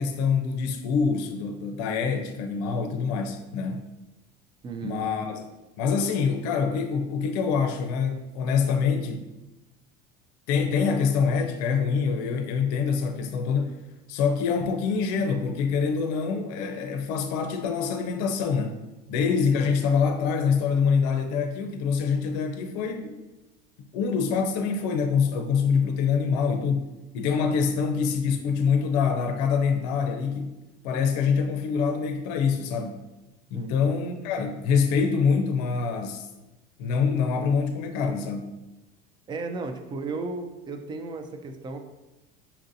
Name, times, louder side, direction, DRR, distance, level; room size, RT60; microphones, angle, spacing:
voice 1, 0.0-3.9 4.8-5.4 5.8-9.3 10.5-13.8 14.1-18.7 19.1-23.2 23.9-30.6 30.8-33.0 33.5-36.3 36.8-38.6, left 5 dB, 75° left, 5 dB, 0.5 m, -25 dB
voice 2, 4.6-5.0 27.6-27.8 33.5-33.8 39.3-41.8, right 3 dB, 20° right, 6 dB, 0.4 m, -34 dB
5.5 x 2.6 x 2.6 m, 1.0 s
supercardioid pair, 130°, 21 cm